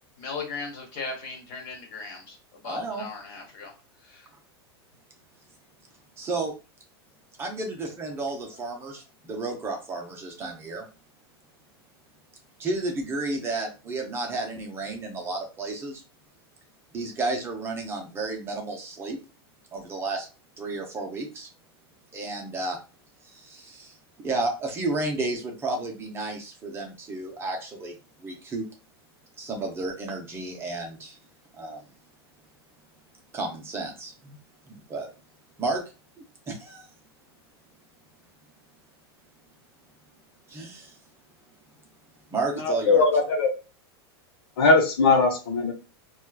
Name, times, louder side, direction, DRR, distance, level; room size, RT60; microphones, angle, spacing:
voice 1, 0.2-2.4 2.6-3.7 4.1-4.3, left 4 dB, 50° left, 2 dB, 1.5 m, -37 dB
voice 2, 2.6-3.1 6.2-6.5 7.4-10.9 12.6-16.0 16.9-19.2 19.7-20.3 20.6-21.5 22.1-22.8 23.2-28.7 29.4-31.2 31.5-31.9 33.3-34.4 34.7-35.1 35.6-35.8 36.5-36.9 40.5-41.0 42.3-43.0, right 2 dB, 20° right, 2 dB, 0.6 m, -32 dB
voice 3, 42.6-43.5 44.6-45.7, left 3 dB, 70° left, 3 dB, 0.9 m, -20 dB
4.2 x 2.4 x 2.3 m, 0.31 s
supercardioid pair, 145°, 13 cm